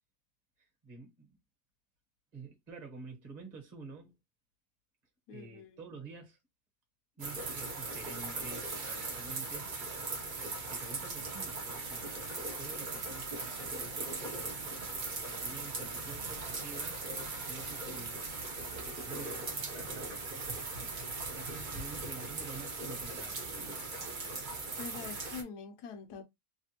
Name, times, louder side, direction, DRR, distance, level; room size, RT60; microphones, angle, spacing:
voice 1, 0.6-1.4 2.3-4.2 5.3-6.4 7.2-9.7 10.7-14.6 15.2-17.0 17.5-18.4 19.0-20.3 20.8-23.8, right 4 dB, 30° right, 1.1 m, -49 dB
voice 2, 5.3-5.8 24.8-26.2, left 5 dB, 75° left, 1.3 m, -45 dB
sound 1, 7.2-25.4, right 3 dB, 50° right, 0.6 m, -39 dB
3.3 x 2.4 x 2.8 m
omnidirectional pair, 1.8 m